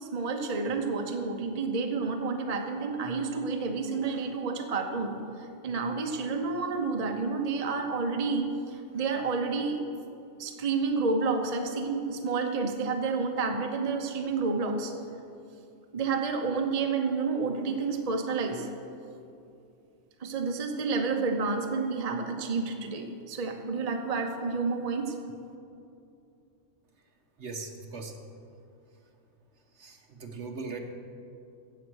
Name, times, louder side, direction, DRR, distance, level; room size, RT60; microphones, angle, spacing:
voice 1, 0.0-9.8 10.4-14.9 15.9-18.7 20.2-25.1, right 4 dB, 35° right, 4 dB, 0.8 m, -30 dB
voice 2, 27.4-28.2 29.7-30.8, right 4 dB, 55° right, 3 dB, 1.4 m, -39 dB
15.5 x 7.8 x 6.3 m, 2.6 s
omnidirectional pair, 1.4 m